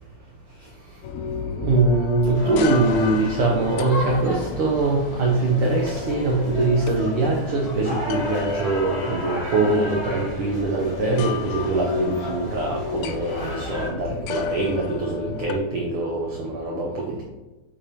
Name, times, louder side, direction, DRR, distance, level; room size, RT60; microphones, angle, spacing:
sound 1, 1.0-15.6, left 6 dB, 80° left, 1.7 m, -33 dB
voice 1, 1.6-17.2, right 2 dB, 70° right, -1 dB, 1.3 m, -23 dB
sound 2, 2.3-13.9, left 1 dB, 15° left, 1.5 m, -35 dB
7.3 x 5.0 x 2.8 m, 1.1 s
omnidirectional pair, 3.3 m